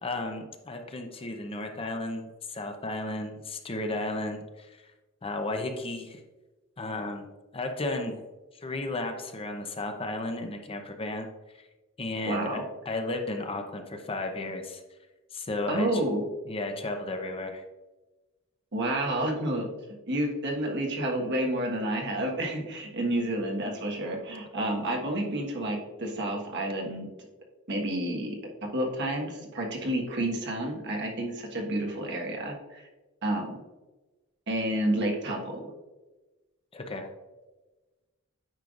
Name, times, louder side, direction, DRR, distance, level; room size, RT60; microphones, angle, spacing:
voice 1, 0.0-4.8 5.2-6.2 6.8-7.3 7.5-8.2 8.6-11.3 12.0-14.8 15.3-16.0 16.5-17.6 36.7-37.1, left 2 dB, 25° left, 5 dB, 0.6 m, -34 dB
voice 2, 12.2-12.6 15.7-16.2 18.7-19.7 20.1-27.1 27.7-28.4 28.7-32.8 33.2-33.6 34.5-35.6, right 1 dB, 55° right, 1 dB, 1.4 m, -30 dB
9.1 x 5.5 x 2.5 m, 1.2 s
head